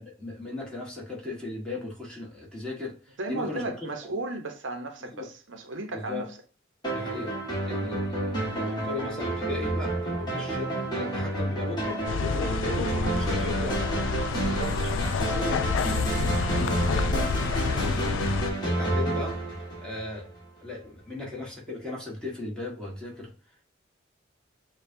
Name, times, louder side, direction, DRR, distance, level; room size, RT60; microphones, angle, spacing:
voice 1, 0.0-3.9 5.0-5.3 5.9-6.2 6.9-7.4 7.7-14.1 14.7-18.3 18.6-19.4 19.8-20.3 20.6-23.3, left 2 dB, 5° left, 1.4 m, -37 dB
voice 2, 3.2-6.3 14.4-14.8, right 2 dB, 75° right, 0.7 m, -35 dB
sound 1, 6.8-20.4, right 1 dB, 20° left, 1.6 m, -30 dB
sound 2, 12.1-18.5, left 5 dB, 75° left, 0.3 m, -28 dB
6.5 x 2.3 x 2.6 m
head